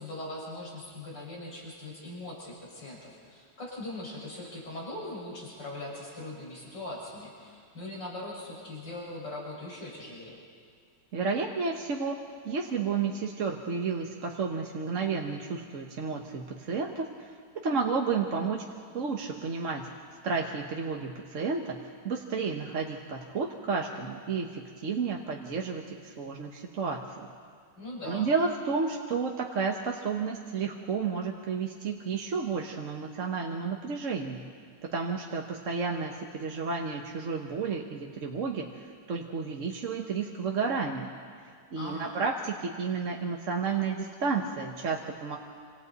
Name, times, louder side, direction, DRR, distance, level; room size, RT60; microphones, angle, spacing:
voice 1, 0.0-10.4 27.8-28.3 41.7-42.2, left 1 dB, 75° left, -4 dB, 6.2 m, -40 dB
voice 2, 11.1-12.2 12.4-17.3 17.6-18.6 18.9-19.9 20.2-21.8 22.0-27.3 28.0-34.4 34.9-38.7 39.1-41.1 41.7-45.4, right 5 dB, 50° right, 1 dB, 1.3 m, -31 dB
27.5 x 26.0 x 4.1 m, 2.2 s
omnidirectional pair, 1.9 m